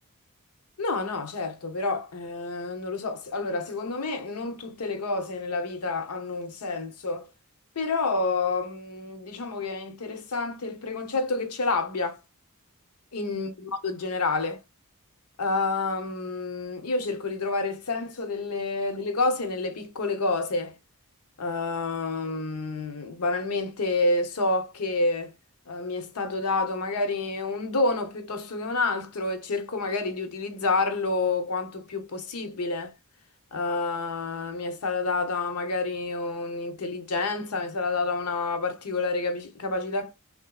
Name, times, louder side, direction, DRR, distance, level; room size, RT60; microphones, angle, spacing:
voice 1, 0.8-7.3 7.8-12.2 13.1-14.6 15.4-20.8 21.4-25.3 25.7-32.9 33.5-40.1, left 3 dB, 85° left, 0.8 m, -29 dB
3.3 x 2.6 x 2.2 m
head